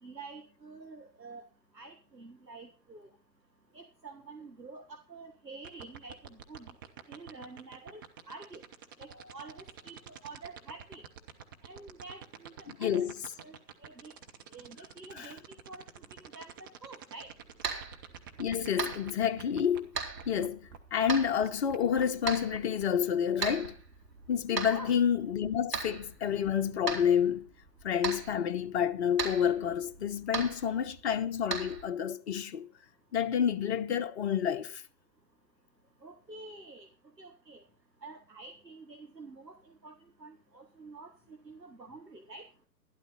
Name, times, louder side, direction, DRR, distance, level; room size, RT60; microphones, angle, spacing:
voice 1, 0.0-1.4 1.7-3.1 3.7-6.7 7.1-8.6 9.0-11.0 11.6-13.1 13.4-14.1 14.5-15.4 15.7-15.9 16.2-17.3 24.6-25.0 36.0-36.9 37.2-37.6 38.0-42.5, right 3 dB, 90° right, 1.5 m, -48 dB
sound 1, 5.6-20.8 21.1-21.2 21.4-23.7, right 9 dB, 15° right, 0.5 m, -47 dB
voice 2, 12.7-13.1 15.2-15.3 18.4-19.9 20.3-23.8 24.3-27.5 27.8-32.7 33.1-34.8, left 8 dB, 40° left, 1.0 m, -29 dB
sound 2, 17.2-31.8, right 4 dB, 75° right, 4.2 m, -40 dB
12.0 x 11.5 x 4.1 m
figure-of-eight pair, 120°, 49 cm